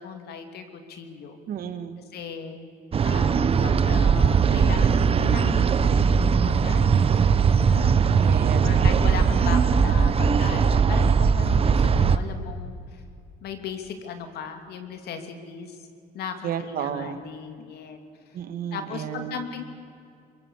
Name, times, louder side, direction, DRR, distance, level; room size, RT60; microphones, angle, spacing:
voice 1, 0.0-1.4 2.0-2.6 3.0-8.0 8.6-13.0 13.4-15.8 16.1-18.0 18.3-18.4 18.7-19.6, left 6 dB, 70° left, 6 dB, 2.9 m, -37 dB
voice 2, 1.5-2.0 8.2-9.1 16.4-17.2 18.3-19.4, right 8 dB, 60° right, 10 dB, 1.8 m, -32 dB
sound 1, 2.9-12.2, right 6 dB, 35° right, 0.9 m, -20 dB
24.5 x 22.5 x 7.4 m, 2.4 s
cardioid pair, 110°, 17 cm